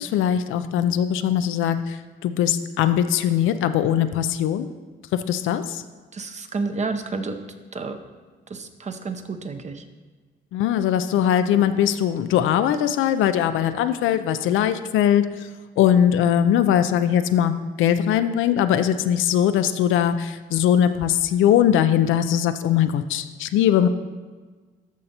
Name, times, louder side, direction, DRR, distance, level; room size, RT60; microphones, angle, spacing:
voice 1, 0.0-4.7 5.1-5.8 10.5-15.5 15.8-23.9, left 10 dB, 85° left, 11 dB, 0.4 m, -21 dB
voice 2, 6.1-7.4 7.7-8.0 8.5-9.8, right 4 dB, 35° right, 7 dB, 0.7 m, -30 dB
13.5 x 5.3 x 2.9 m, 1.4 s
cardioid pair, 90°, 20 cm